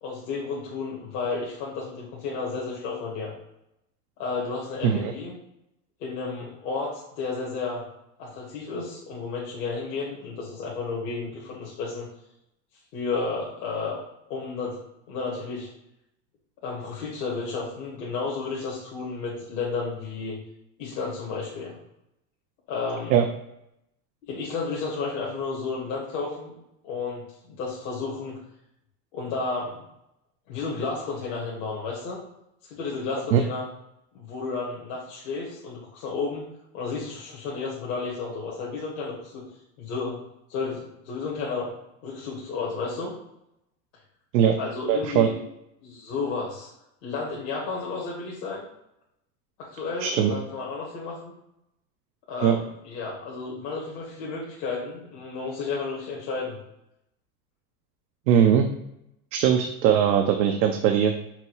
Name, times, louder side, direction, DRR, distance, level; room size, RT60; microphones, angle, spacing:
voice 1, 0.0-3.3 4.2-5.3 6.0-7.8 8.2-12.1 12.9-14.0 14.3-14.8 15.1-15.7 16.6-20.4 20.8-21.8 22.7-23.1 24.2-26.5 26.8-28.4 29.1-29.8 30.5-32.2 32.6-33.6 34.1-36.5 36.7-39.4 39.8-40.2 40.5-41.7 42.0-43.1 44.6-45.4 45.8-46.7 47.0-48.7 49.6-51.3 52.3-56.6, left 4 dB, 65° left, -4 dB, 1.3 m, -32 dB
voice 2, 44.9-45.3 50.0-50.3 52.4-52.6 58.3-58.7 59.3-61.2, right 9 dB, 85° right, 5 dB, 0.6 m, -20 dB
5.8 x 2.3 x 3.0 m, 0.83 s
supercardioid pair, 105°, 49 cm